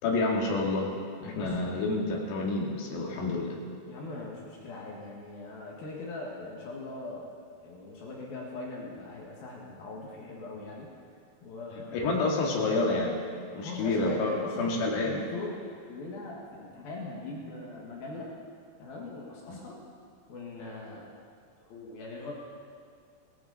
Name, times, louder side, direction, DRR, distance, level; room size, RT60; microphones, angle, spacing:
voice 1, 0.0-3.6 11.9-13.2 13.5-15.2 19.5-19.6, left 3 dB, 90° left, -1 dB, 4.2 m, -29 dB
voice 2, 1.2-2.0 3.9-7.3 7.6-10.9 11.4-12.1 13.6-14.8 15.0-15.6 15.9-18.3 18.8-19.8 20.3-21.1 21.7-22.3, left 2 dB, 65° left, -3 dB, 3.5 m, -41 dB
18.0 x 15.0 x 4.2 m, 2.3 s
omnidirectional pair, 4.7 m